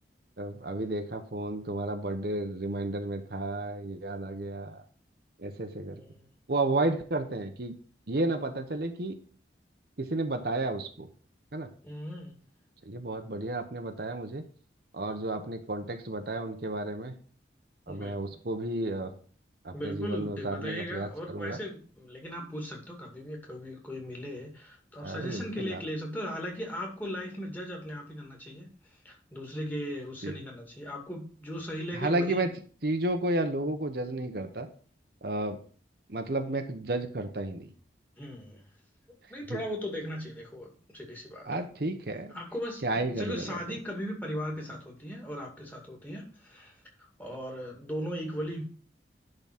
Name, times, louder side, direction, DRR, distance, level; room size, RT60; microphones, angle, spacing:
voice 1, 0.4-4.8 5.4-6.0 6.5-7.7 8.1-9.2 10.0-11.1 11.5-11.7 12.9-14.4 14.9-17.1 17.9-19.1 19.6-21.6 25.0-25.8 30.2-30.3 31.9-32.5 32.8-34.7 35.2-35.6 36.1-37.7 39.5-39.6 41.5-42.3 42.8-43.6, right 2 dB, 60° right, 6 dB, 1.0 m, -32 dB
voice 2, 5.9-6.3 11.8-12.4 17.9-18.2 19.7-32.5 38.2-38.6 39.3-41.5 42.3-48.6, equal, 10° left, 0 dB, 2.2 m, -38 dB
10.5 x 4.0 x 5.9 m, 0.43 s
head